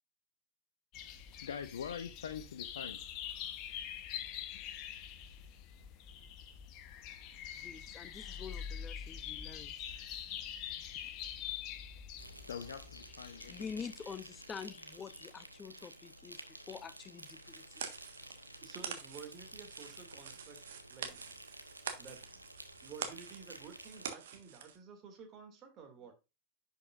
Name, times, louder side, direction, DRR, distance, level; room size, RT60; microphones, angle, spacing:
sound 1, 0.9-15.4, left 9 dB, 40° left, 1.0 m, -45 dB
voice 1, 1.4-3.0 4.5-4.6 10.0-10.4 12.5-13.8, left 7 dB, 65° left, 0.7 m, -44 dB
voice 2, 7.6-9.7 13.5-17.8, left 6 dB, 20° left, 0.7 m, -47 dB
Insect, 12.2-24.1, right 1 dB, 85° right, 1.0 m, -52 dB
sound 2, 17.2-24.8, right 8 dB, 55° right, 1.4 m, -46 dB
voice 3, 18.6-20.6 20.9-21.2 22.0-22.2 22.8-26.1, right 6 dB, 30° right, 2.5 m, -52 dB
10.5 x 5.6 x 2.5 m
figure-of-eight pair, 90°, 0 cm